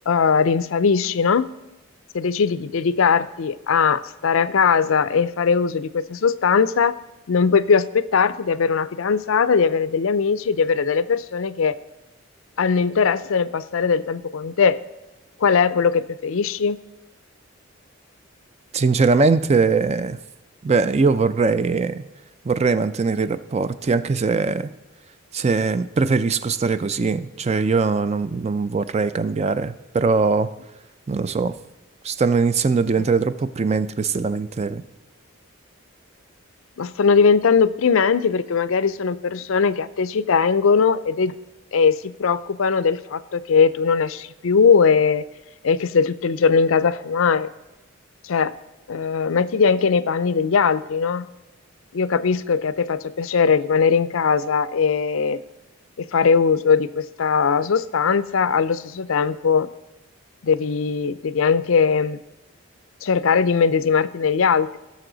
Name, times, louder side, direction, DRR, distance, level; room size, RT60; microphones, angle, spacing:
voice 1, 0.1-1.5 2.1-7.0 7.3-11.8 12.6-14.8 15.4-16.8 33.0-33.1 36.8-41.3 41.7-45.2 45.6-47.5 48.2-48.5 48.9-51.3 51.9-55.4 56.0-59.7 60.4-62.2 63.0-64.8, left 5 dB, 70° left, 16 dB, 0.5 m, -20 dB
voice 2, 18.7-20.2 20.6-22.0 22.4-24.7 25.3-30.5 31.1-31.6 32.0-34.8, right 4 dB, 30° right, 13 dB, 0.4 m, -21 dB
17.0 x 6.9 x 3.9 m, 1.1 s
head